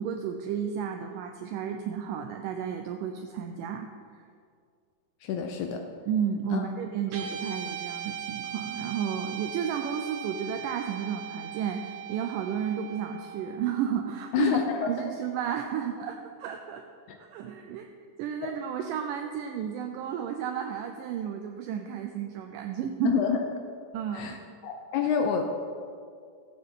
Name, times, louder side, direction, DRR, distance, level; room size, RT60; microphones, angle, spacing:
voice 1, 0.0-3.9 6.1-16.9 17.2-17.9 18.2-23.2 23.9-24.4, right 8 dB, 80° right, 5 dB, 2.0 m, -32 dB
voice 2, 5.2-5.8 6.5-6.7 14.3-14.9 17.1-17.2 18.4-18.5 23.0-23.4 24.1-24.4 24.6-25.4, left 7 dB, 90° left, 4 dB, 1.6 m, -27 dB
Guitar, 7.1-15.6, right 8 dB, 60° right, 2.2 m, -40 dB
16.5 x 8.7 x 3.7 m, 2.2 s
omnidirectional pair, 4.3 m